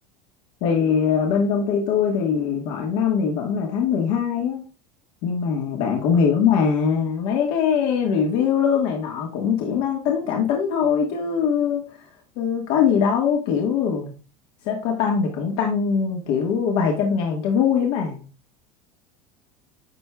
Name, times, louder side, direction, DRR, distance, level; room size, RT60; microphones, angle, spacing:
voice 1, 0.6-4.6 5.2-12.0 12.4-14.1 14.6-18.2, left 7 dB, 65° left, 0 dB, 1.4 m, -22 dB
10.5 x 4.6 x 2.2 m, 0.35 s
supercardioid pair, 110°, 19 cm